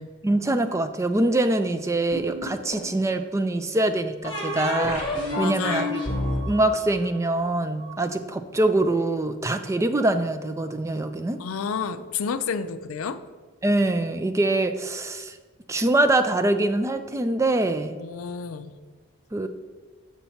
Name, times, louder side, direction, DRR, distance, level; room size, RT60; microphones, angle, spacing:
voice 1, 0.2-5.1 5.4-6.0 6.5-11.4 13.6-15.4 15.7-17.9 19.3-19.5, right 2 dB, 15° right, 9 dB, 0.3 m, -24 dB
sound 1, 2.1-3.0 4.2-7.9, left 1 dB, 25° left, 1.4 m, -29 dB
voice 2, 5.4-6.3 11.4-13.2 18.0-18.7, left 6 dB, 80° left, 12 dB, 0.4 m, -31 dB
7.1 x 5.5 x 4.4 m, 1.4 s
head